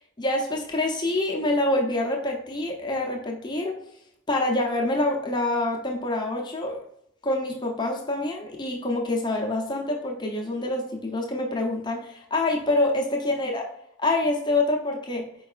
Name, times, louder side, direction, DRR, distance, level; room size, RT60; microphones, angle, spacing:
voice 1, 0.2-3.7 4.3-6.8 7.2-13.7 14.0-15.3, left 2 dB, 20° left, 0 dB, 0.6 m, -26 dB
4.6 x 4.5 x 2.4 m, 0.74 s
head